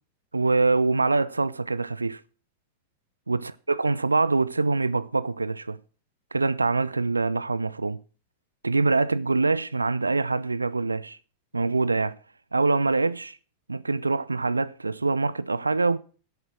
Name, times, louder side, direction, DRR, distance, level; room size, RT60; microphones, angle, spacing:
voice 1, 0.3-2.2 3.3-5.8 6.3-8.0 8.6-11.2 11.5-12.2 12.5-13.4 13.7-16.0, right 3 dB, 80° right, 0.5 m, -24 dB
11.0 x 8.3 x 6.0 m
figure-of-eight pair, 90°, 0 cm